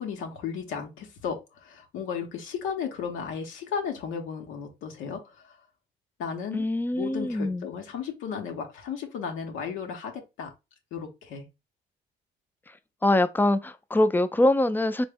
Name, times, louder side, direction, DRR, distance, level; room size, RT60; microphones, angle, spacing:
voice 1, 0.0-5.6 6.2-6.7 6.9-10.5 10.9-11.5, left 6 dB, 90° left, 0.7 m, -34 dB
voice 2, 6.5-7.7 13.0-15.1, left 1 dB, 10° left, 0.3 m, -23 dB
3.7 x 2.0 x 3.4 m
cardioid pair, 90°, 20 cm